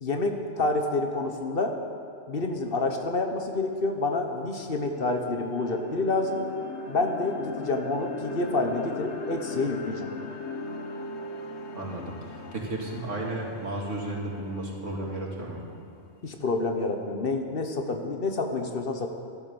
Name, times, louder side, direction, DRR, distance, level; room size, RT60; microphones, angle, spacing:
voice 1, 0.0-1.8 2.3-6.4 6.9-10.1 16.2-19.1, left 2 dB, 50° left, 4 dB, 1.3 m, -28 dB
sound 1, 3.6-3.7 4.1-16.2, left 3 dB, 70° left, 1.4 m, -39 dB
voice 2, 11.7-15.6, right 2 dB, 80° right, -2 dB, 2.7 m, -33 dB
13.5 x 11.5 x 7.0 m, 2.4 s
omnidirectional pair, 1.2 m